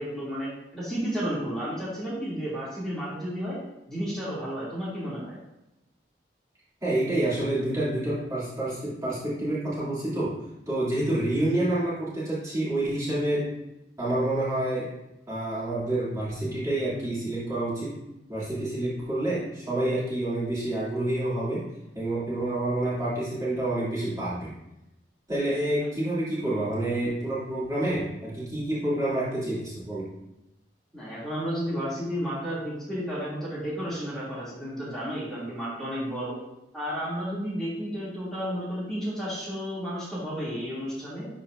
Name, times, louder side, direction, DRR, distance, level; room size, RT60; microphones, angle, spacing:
voice 1, 0.0-3.6 3.9-5.4 30.9-36.4 36.7-41.3, equal, 5° left, -10 dB, 2.6 m, -32 dB
voice 2, 6.8-10.3 10.7-13.6 14.0-14.9 15.3-17.9 18.3-21.6 21.9-24.5 25.3-30.1, right 1 dB, 20° right, -10 dB, 2.6 m, -28 dB
11.5 x 4.4 x 2.6 m, 0.92 s
head